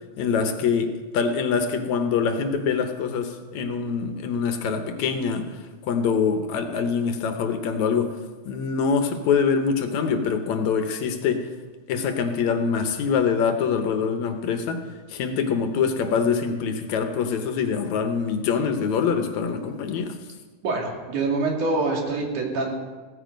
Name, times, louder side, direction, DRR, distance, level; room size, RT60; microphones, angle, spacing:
voice 1, 0.2-5.5 5.8-8.2 8.5-11.5 11.9-14.8 15.1-20.2, left 6 dB, 70° left, 7 dB, 2.3 m, -24 dB
voice 2, 20.6-22.7, right 3 dB, 80° right, 0 dB, 3.9 m, -25 dB
16.5 x 14.0 x 5.2 m, 1.3 s
omnidirectional pair, 3.5 m